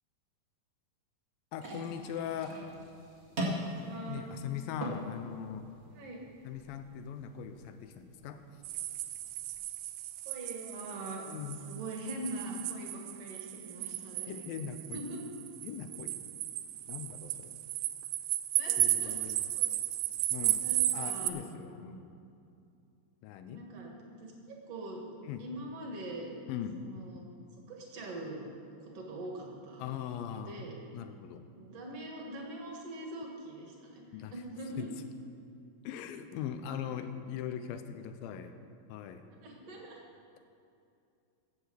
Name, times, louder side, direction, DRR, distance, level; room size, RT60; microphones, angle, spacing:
voice 1, 1.5-2.6 4.1-5.7 6.5-8.4 11.3-11.6 14.3-15.0 15.6-16.1 16.9-17.5 18.8-19.5 20.3-20.6 20.9-22.2 23.2-23.7 25.2-25.4 26.5-26.7 29.8-30.6 30.9-31.4 34.1-34.3 34.8-34.9 35.8-38.6 38.9-39.3, left 8 dB, 80° left, 9 dB, 2.4 m, -40 dB
sound 1, 1.5-9.6, equal, 30° right, 1.1 m, -42 dB
voice 2, 3.5-4.3 5.9-6.2 10.3-11.3 11.6-14.4 14.9-15.2 18.6-19.2 19.6-19.7 20.6-21.4 23.5-25.0 25.4-26.3 26.8-27.3 27.5-28.4 28.8-29.9 30.3-30.7 31.6-34.0 34.3-34.9 39.4-40.0, right 1 dB, 50° right, 0 dB, 2.4 m, -43 dB
chains echo hall, 8.6-21.3, right 15 dB, 85° right, 2.5 m, -34 dB
15.0 x 6.5 x 7.7 m, 2.6 s
omnidirectional pair, 4.4 m